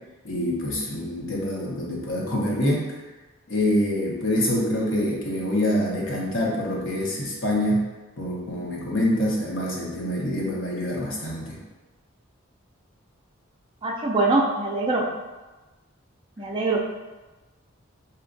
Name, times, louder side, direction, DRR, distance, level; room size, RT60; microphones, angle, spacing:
voice 1, 0.2-2.9 3.5-7.8 8.2-11.6, left 1 dB, 60° left, -3 dB, 0.8 m, -25 dB
voice 2, 13.8-15.0 16.4-16.8, right 2 dB, 25° right, -3 dB, 0.3 m, -23 dB
4.2 x 2.3 x 2.5 m, 1.2 s
head